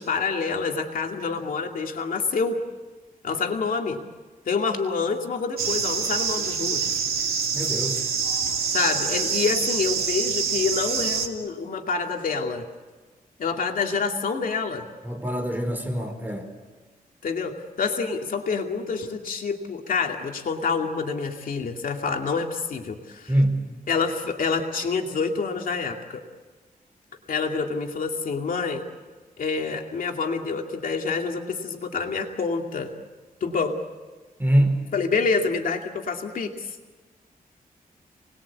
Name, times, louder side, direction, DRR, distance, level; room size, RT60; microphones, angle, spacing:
voice 1, 0.0-2.6 3.2-4.0 4.5-6.9 8.7-12.6 13.4-14.8 17.2-23.3 23.9-26.2 27.3-28.8 29.4-32.9 33.4-33.8 34.9-36.8, left 5 dB, 65° left, 2 dB, 2.5 m, -27 dB
sound 1, 5.6-11.3, right 6 dB, 85° right, 2.8 m, -26 dB
voice 2, 7.5-8.0 15.0-16.5 23.3-23.6 34.4-34.8, right 1 dB, 10° right, 3 dB, 4.4 m, -24 dB
29.5 x 20.5 x 8.5 m, 1.3 s
wide cardioid pair, 155°, 15 cm